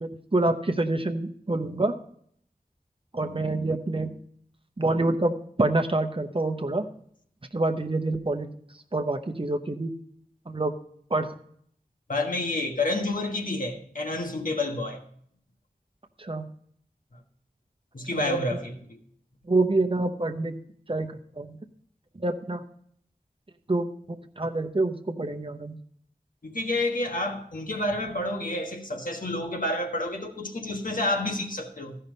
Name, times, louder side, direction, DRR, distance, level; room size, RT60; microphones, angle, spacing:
voice 1, 0.0-2.0 3.1-4.1 4.8-6.9 7.5-8.5 8.9-10.0 10.5-10.7 11.1-11.3 16.2-16.5 18.1-18.4 19.5-20.6 20.9-21.6 22.2-22.6 23.7-25.7, right 2 dB, 35° right, 0.8 m, -27 dB
voice 2, 12.1-15.0 17.9-19.0 26.4-32.0, left 2 dB, 65° left, 1.4 m, -29 dB
14.0 x 5.6 x 5.2 m
wide cardioid pair, 50°, 15 cm